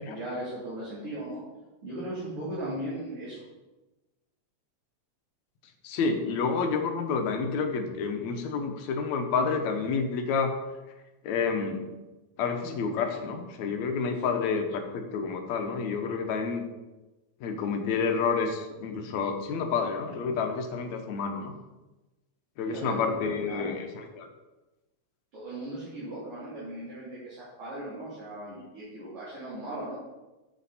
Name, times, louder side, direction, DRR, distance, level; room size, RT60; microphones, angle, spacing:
voice 1, 0.0-1.4 1.8-3.4 14.2-14.4 22.7-23.7 25.3-29.9, right 1 dB, 50° right, -10 dB, 4.0 m, -37 dB
voice 2, 5.8-10.5 11.2-11.9 12.4-16.6 17.4-21.5 22.6-24.3, left 5 dB, 75° left, 5 dB, 2.3 m, -29 dB
9.6 x 8.0 x 4.2 m, 1.1 s
omnidirectional pair, 3.3 m